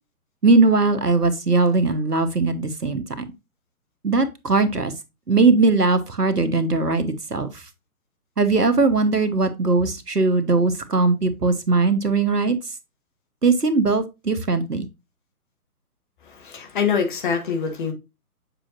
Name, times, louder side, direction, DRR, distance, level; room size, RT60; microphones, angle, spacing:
voice 1, 0.4-3.0 4.0-4.9 5.3-7.6 8.4-12.6 13.4-14.9, right 3 dB, 85° right, 1.2 m, -20 dB
voice 2, 16.3-17.9, left 6 dB, 30° left, 1.5 m, -24 dB
7.5 x 5.0 x 2.5 m
figure-of-eight pair, 130°, 46 cm